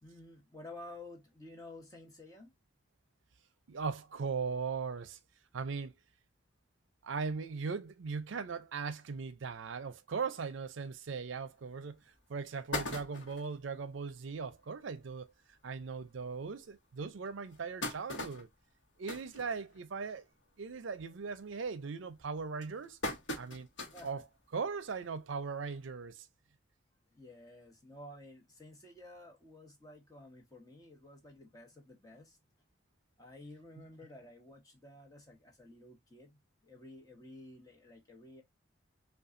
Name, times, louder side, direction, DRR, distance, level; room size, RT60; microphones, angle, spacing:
voice 1, 0.0-2.5 23.9-24.2 27.1-32.4 33.2-38.4, left 2 dB, 20° left, 1.0 m, -52 dB
voice 2, 3.7-5.2 5.5-5.9 7.0-12.0 12.3-15.3 15.6-18.5 19.0-20.3 20.6-23.0 23.4-23.7 24.0-24.2 24.5-26.3, right 5 dB, 80° right, 0.5 m, -39 dB
sound 1, 11.6-11.7 12.2-12.3 12.5-13.6 14.1-14.2 14.5-14.6 14.9-15.1 15.8-15.9 16.4-16.5 17.3-20.1 20.5-20.8 21.1-21.5 22.2-24.2 24.6-24.7 25.9-26.0, left 2 dB, 75° left, 1.0 m, -41 dB
5.4 x 2.3 x 2.5 m
head